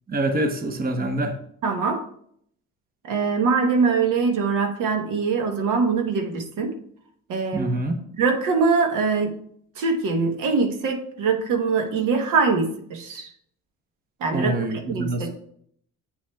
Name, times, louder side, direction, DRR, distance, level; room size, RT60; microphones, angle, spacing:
voice 1, 0.1-1.3 7.5-8.0 14.3-15.3, right 1 dB, 30° right, 6 dB, 0.9 m, -25 dB
voice 2, 1.6-2.0 3.0-6.7 7.3-7.8 8.2-9.4 9.8-13.3 14.2-14.6 14.9-15.3, right 4 dB, 85° right, 4 dB, 1.0 m, -23 dB
7.4 x 7.1 x 2.3 m, 0.65 s
cardioid pair, 90°, 30 cm